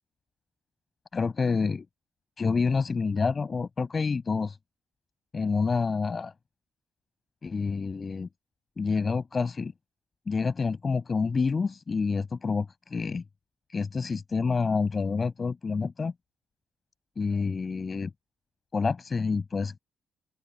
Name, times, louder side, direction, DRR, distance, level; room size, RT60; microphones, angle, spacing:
voice 1, 1.1-1.8 2.4-4.6 5.3-6.3 7.4-8.3 8.8-9.7 10.3-13.2 13.7-16.1 17.2-18.1 18.7-19.8, left 4 dB, 35° left, 6.6 m, -28 dB
open air
cardioid pair, 90°, 0 cm